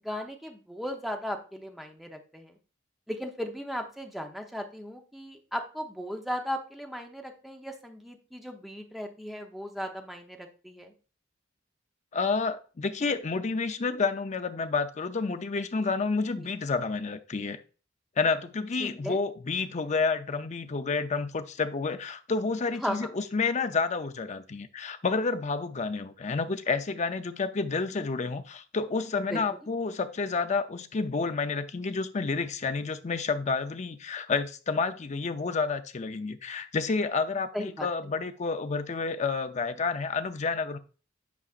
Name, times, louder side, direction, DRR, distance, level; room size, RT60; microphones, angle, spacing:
voice 1, 0.0-2.6 3.1-10.9 18.8-19.2 22.8-23.1 29.3-29.4 37.5-38.1, equal, ahead, 0.8 m, -36 dB
voice 2, 12.1-17.6 18.2-40.8, left 4 dB, 35° left, 0.5 m, -30 dB
8.3 x 5.0 x 2.4 m
head